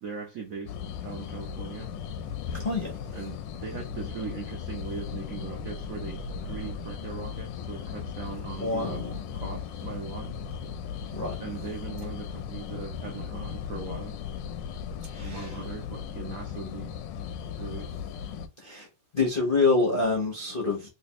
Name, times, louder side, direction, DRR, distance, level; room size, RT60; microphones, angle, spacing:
voice 1, 0.0-0.8 1.0-1.9 3.1-9.0 9.3-10.3 11.4-14.1 15.2-16.9 17.6-17.9, right 5 dB, 70° right, 0.8 m, -39 dB
sound 1, 0.7-18.5, left 7 dB, 75° left, 1.1 m, -37 dB
voice 2, 8.6-9.2 11.1-11.4 15.1-15.5 18.6-18.9 19.1-20.9, left 3 dB, 50° left, 0.6 m, -26 dB
3.3 x 2.9 x 3.0 m
omnidirectional pair, 2.3 m